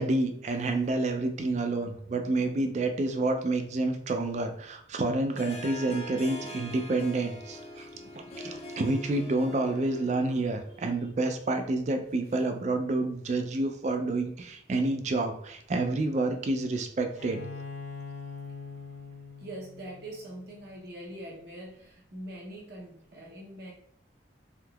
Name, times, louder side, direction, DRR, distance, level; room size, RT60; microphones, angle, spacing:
voice 1, 0.0-17.4, right 2 dB, 35° right, 6 dB, 0.3 m, -29 dB
Harp, 5.4-10.8, equal, 35° left, 0.4 m, -43 dB
Bowed string instrument, 17.2-20.8, left 5 dB, 75° left, 0.7 m, -43 dB
voice 2, 19.4-23.7, right 1 dB, 55° right, -3 dB, 0.7 m, -43 dB
3.5 x 2.7 x 2.3 m, 0.67 s
head